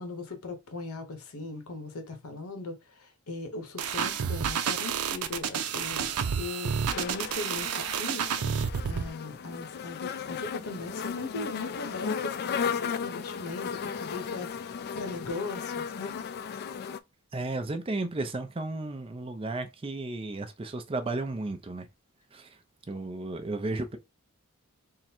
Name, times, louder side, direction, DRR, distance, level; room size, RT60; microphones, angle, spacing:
voice 1, 0.0-16.2, left 3 dB, 80° left, 1.0 m, -39 dB
sound 1, 3.8-9.1, right 7 dB, 90° right, 0.5 m, -30 dB
sound 2, 6.9-17.0, left 6 dB, 50° left, 0.3 m, -35 dB
voice 2, 17.3-21.9 22.3-22.5 22.9-24.0, right 2 dB, 25° right, 0.5 m, -33 dB
3.7 x 2.1 x 4.3 m
head